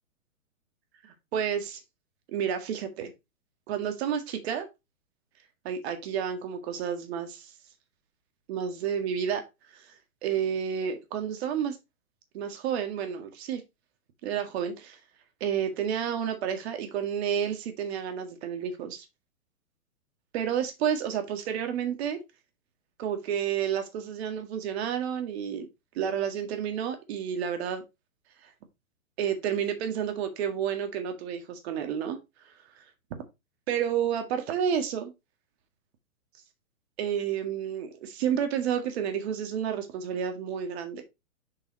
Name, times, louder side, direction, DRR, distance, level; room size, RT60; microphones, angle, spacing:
voice 1, 1.3-1.8 2.3-3.1 3.7-4.7 5.6-7.5 8.5-9.4 9.7-9.9 10.2-11.8 12.3-13.6 14.2-15.0 15.4-19.1 20.3-22.2 23.0-25.7 26.0-27.8 29.2-32.2 33.1-33.2 33.7-35.1 37.0-41.0, right 8 dB, 45° right, 1.9 m, -30 dB
7.3 x 4.0 x 4.0 m
hypercardioid pair, 140°, 42 cm